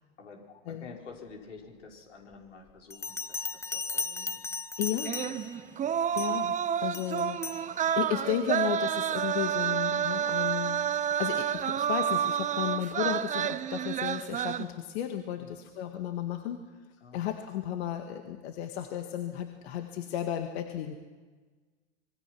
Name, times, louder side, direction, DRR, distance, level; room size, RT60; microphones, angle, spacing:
voice 1, 0.2-4.4 5.6-5.8 15.4-15.6 17.0-17.3, left 4 dB, 85° left, 0 dB, 5.0 m, -49 dB
Bell, 2.9-5.6 6.2-6.5 6.9-7.7, left 4 dB, 10° left, 0.6 m, -36 dB
voice 2, 4.8-5.1 6.2-6.5 6.8-16.6 17.1-20.9, left 11 dB, 65° left, 5 dB, 1.9 m, -34 dB
sound 1, 5.0-14.7, right 9 dB, 20° right, 0.9 m, -29 dB
26.0 x 21.0 x 6.2 m, 1.4 s
hypercardioid pair, 105°, 35 cm